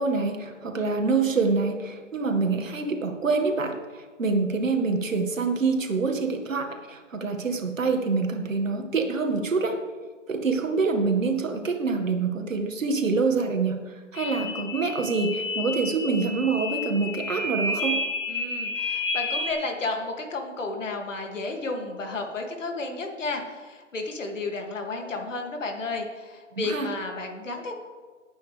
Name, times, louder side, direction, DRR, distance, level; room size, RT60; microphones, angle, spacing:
voice 1, 0.0-9.8 10.3-13.8 14.1-18.0 26.5-26.9, right 4 dB, 85° right, 4 dB, 2.0 m, -26 dB
sound 1, 14.1-19.5, left 2 dB, 50° left, 4.1 m, -30 dB
voice 2, 18.3-27.7, left 3 dB, 75° left, 2 dB, 2.6 m, -32 dB
17.5 x 9.0 x 3.4 m, 1.5 s
hypercardioid pair, 145°, 38 cm